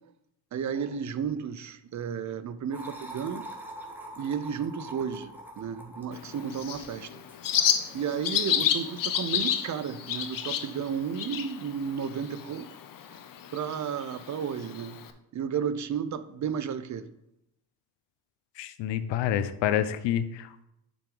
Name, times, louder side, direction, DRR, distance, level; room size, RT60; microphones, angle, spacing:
voice 1, 0.5-3.5 4.2-7.2 7.9-12.8 13.1-13.2 13.5-15.0 15.3-17.1, right 7 dB, 45° right, 0.6 m, -33 dB
sound 1, 2.7-8.8, right 1 dB, 5° right, 1.5 m, -45 dB
Bird, 6.1-15.1, left 9 dB, 50° left, 0.7 m, -31 dB
voice 2, 18.6-20.6, left 10 dB, 85° left, 0.6 m, -28 dB
6.9 x 6.0 x 3.8 m
cardioid pair, 85°, 42 cm